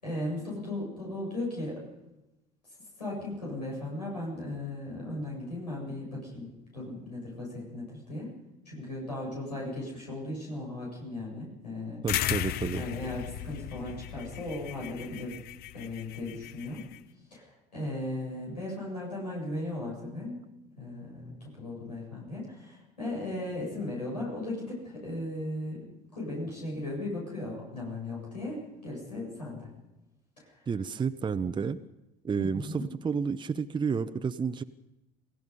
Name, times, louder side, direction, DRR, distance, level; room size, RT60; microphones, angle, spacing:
voice 1, 0.0-1.8 3.0-8.3 8.7-12.0 12.7-15.3 15.7-16.8 17.3-20.4 20.8-25.9 26.1-29.7 30.4-30.7 32.4-32.9, left 1 dB, 90° left, -4 dB, 7.5 m, -37 dB
voice 2, 12.0-12.8 30.7-31.8 32.2-34.6, right 6 dB, 25° right, 8 dB, 0.9 m, -30 dB
sound 1, 12.1-17.0, left 13 dB, 50° left, 0.7 m, -36 dB
28.0 x 17.0 x 5.4 m, 0.97 s
figure-of-eight pair, 65°, 20 cm